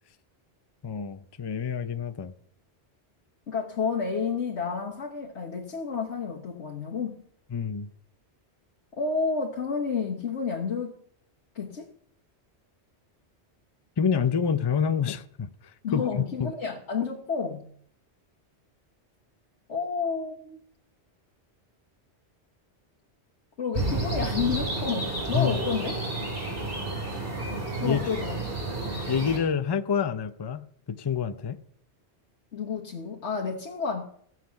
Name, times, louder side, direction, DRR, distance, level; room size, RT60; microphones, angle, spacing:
voice 1, 0.8-2.3 7.5-7.9 14.0-16.5 25.3-25.6 27.8-28.0 29.1-31.6, left 7 dB, 30° left, 0.5 m, -27 dB
voice 2, 3.5-7.2 8.9-10.9 11.6-11.9 15.8-17.6 19.7-20.6 23.6-26.0 27.8-28.4 32.5-34.0, left 5 dB, 85° left, 1.6 m, -30 dB
sound 1, 23.7-29.4, right 2 dB, 55° right, 3.9 m, -31 dB
17.0 x 7.6 x 5.8 m
omnidirectional pair, 1.1 m